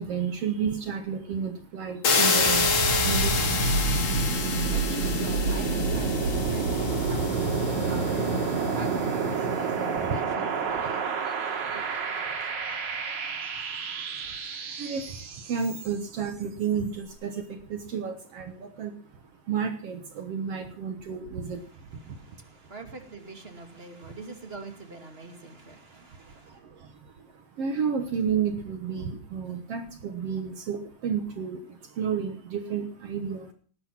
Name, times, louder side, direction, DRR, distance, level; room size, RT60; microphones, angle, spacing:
voice 1, 0.0-3.8 4.5-4.6 8.5-8.8 9.8-10.2 10.7-10.8 12.3-12.4 12.7-14.4 14.7-22.6 23.6-24.2 26.0-33.5, right 6 dB, 60° right, 2.0 m, -33 dB
sound 1, 2.0-8.9, left 4 dB, 60° left, 3.5 m, -28 dB
sound 2, 2.3-16.2, right 4 dB, 80° right, 3.5 m, -29 dB
voice 2, 3.7-12.4 22.0-26.5, right 2 dB, 20° right, 2.4 m, -45 dB
18.5 x 10.5 x 6.0 m
omnidirectional pair, 3.4 m